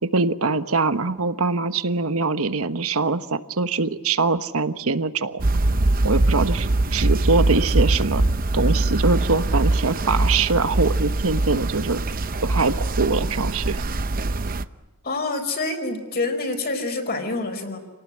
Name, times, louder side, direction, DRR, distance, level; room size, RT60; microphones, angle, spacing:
voice 1, 0.0-5.4 6.0-8.2 8.5-12.0 12.4-13.8, right 3 dB, 70° right, 11 dB, 1.2 m, -23 dB
sound 1, 5.4-14.6, right 2 dB, 40° right, 0.7 m, -22 dB
voice 2, 15.0-17.8, left 3 dB, 45° left, 4 dB, 4.6 m, -27 dB
28.0 x 18.5 x 8.9 m, 1.3 s
head